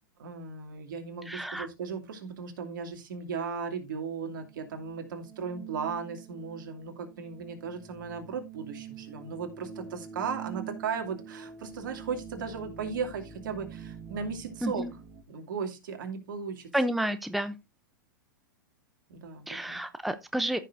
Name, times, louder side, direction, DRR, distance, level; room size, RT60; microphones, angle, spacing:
voice 1, 0.2-14.8 15.3-16.7 19.1-19.8, right 6 dB, 65° right, 5 dB, 2.6 m, -36 dB
voice 2, 1.3-1.7 14.6-14.9 16.7-17.6 19.5-20.6, right 1 dB, ahead, 11 dB, 0.6 m, -30 dB
sound 1, 4.2-15.2, right 7 dB, 30° right, 1.5 m, -46 dB
14.5 x 6.6 x 2.6 m, 0.23 s
hypercardioid pair, 110°, 11 cm